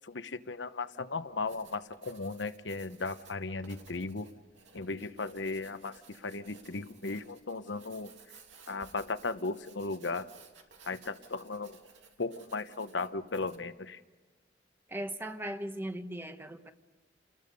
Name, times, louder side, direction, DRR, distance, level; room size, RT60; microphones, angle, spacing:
voice 1, 0.0-4.3 4.7-8.1 8.7-10.3 10.9-11.8 12.2-14.0, left 3 dB, 80° left, 11 dB, 1.0 m, -36 dB
Writing, 1.3-13.7, right 5 dB, 85° right, 2.7 m, -58 dB
voice 2, 14.9-16.7, right 1 dB, 10° right, 8 dB, 1.1 m, -38 dB
29.5 x 20.5 x 5.4 m, 1.4 s
head